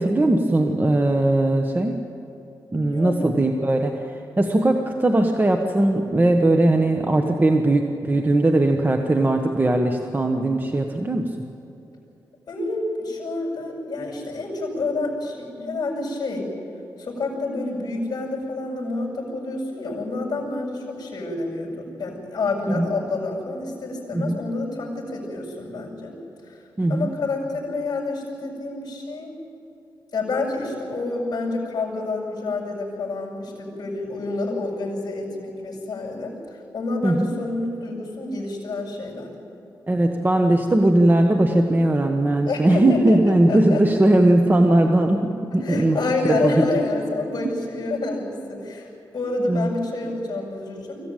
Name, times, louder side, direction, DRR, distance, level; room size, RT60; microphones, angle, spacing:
voice 1, 0.0-2.0 2.7-4.0 4.4-11.3 22.7-22.9 24.1-24.4 26.8-27.1 37.0-37.3 39.9-46.0 46.2-46.7 49.5-49.7, right 1 dB, 25° right, 4 dB, 1.3 m, -19 dB
voice 2, 2.9-3.2 12.5-16.5 17.0-26.1 26.9-29.3 30.1-36.3 36.7-39.3 42.4-43.8 45.6-48.9 49.1-51.0, left 2 dB, 50° left, -3 dB, 7.1 m, -28 dB
24.5 x 16.0 x 9.1 m, 2.8 s
cardioid pair, 85°, 8 cm